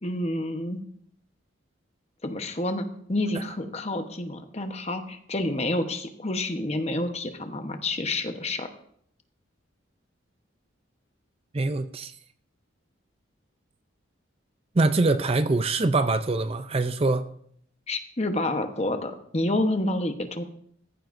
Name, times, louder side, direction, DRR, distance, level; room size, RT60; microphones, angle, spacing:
voice 1, 0.0-0.8 2.2-8.7 17.9-20.4, left 1 dB, 30° left, 1.1 m, -29 dB
voice 2, 11.5-12.1 14.7-17.2, right 2 dB, 30° right, 0.5 m, -24 dB
15.5 x 14.5 x 2.6 m
head